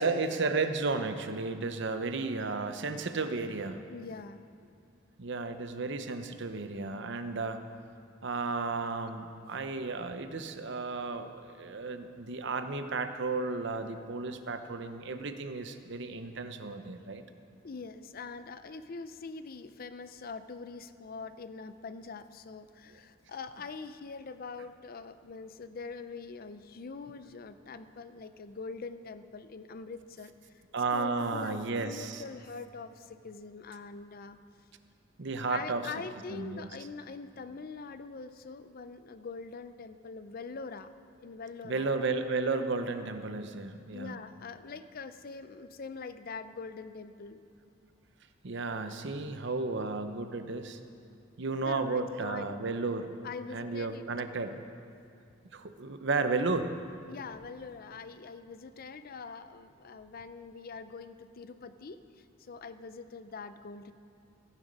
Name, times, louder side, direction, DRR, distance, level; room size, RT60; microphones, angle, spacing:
voice 1, 0.0-3.8 5.2-7.6 8.2-17.2 30.7-32.2 35.2-35.8 36.3-36.7 41.6-44.1 48.4-50.8 51.4-53.1 53.5-54.6 55.5-56.7, right 3 dB, 65° right, 8 dB, 0.8 m, -33 dB
voice 2, 3.9-4.5 17.6-30.6 30.9-34.4 35.5-40.9 41.2-41.9 43.9-47.4 49.1-49.2 51.6-52.5 53.2-54.0 57.1-63.9, left 4 dB, 50° left, 11 dB, 0.5 m, -43 dB
15.0 x 11.0 x 5.3 m, 2.5 s
head